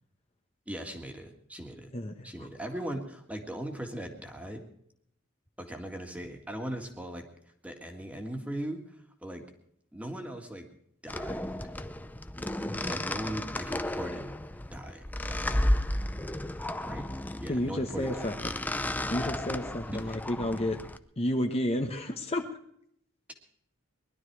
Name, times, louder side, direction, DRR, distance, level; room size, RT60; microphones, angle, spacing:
voice 1, 0.7-1.9 2.2-4.6 5.6-7.3 7.6-9.4 9.9-10.7 11.0-11.4 12.8-14.3 14.7-15.7 16.8-17.1 17.4-18.3 19.9-20.2, right 1 dB, 5° right, 4 dB, 2.0 m, -39 dB
voice 2, 1.9-2.5 12.7-13.0 17.5-18.3 19.1-20.8 21.2-22.5, left 1 dB, 30° left, 4 dB, 1.1 m, -31 dB
sound 1, 11.1-21.0, left 1 dB, 10° left, 0.6 m, -33 dB
20.5 x 12.0 x 4.7 m, 0.68 s
head